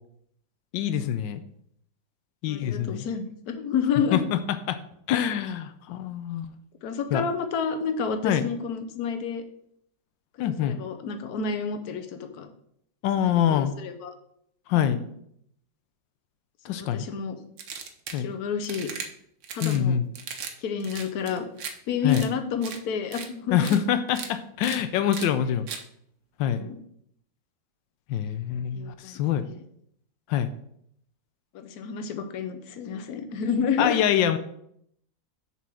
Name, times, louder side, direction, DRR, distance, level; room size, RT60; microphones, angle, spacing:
voice 1, 0.7-1.4 2.4-3.1 4.1-4.4 4.7-4.8 5.1-6.5 7.1-7.2 8.2-8.4 10.4-10.8 13.0-13.7 14.7-15.0 16.6-17.1 18.1-18.3 19.6-20.1 22.0-22.3 23.5-25.7 26.4-26.6 28.1-29.4 30.3-30.5 33.8-34.4, left 10 dB, 90° left, 11 dB, 1.3 m, -25 dB
voice 2, 2.5-4.2 6.8-9.4 10.4-12.5 13.2-14.1 14.7-15.1 16.7-17.4 18.1-18.9 19.5-20.0 20.6-23.8 25.5-25.6 26.4-26.8 28.7-29.6 31.5-34.0, left 6 dB, 65° left, 7 dB, 1.3 m, -30 dB
sound 1, 17.6-18.2 18.6-19.1 19.4-19.8 20.1-20.5 20.8-21.7 22.1-22.3 22.6-22.8 23.1-23.3 23.6-23.8 24.1-24.3 24.6-24.8 25.1-25.3 25.7-25.8, right 6 dB, 80° right, 1.6 m, -37 dB
6.9 x 4.6 x 6.1 m, 0.70 s
omnidirectional pair, 1.9 m